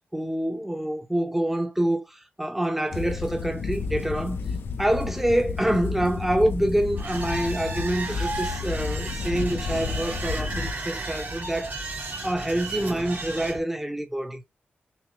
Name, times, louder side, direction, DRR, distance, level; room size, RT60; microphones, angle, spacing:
voice 1, 0.1-4.4 4.8-12.0 12.2-14.4, right 1 dB, 5° right, 0.6 m, -26 dB
sound 1, 2.9-10.7, left 5 dB, 70° left, 0.5 m, -32 dB
sound 2, 7.0-13.6, right 3 dB, 55° right, 1.0 m, -34 dB
5.7 x 2.0 x 3.1 m
wide cardioid pair, 150°, 4 cm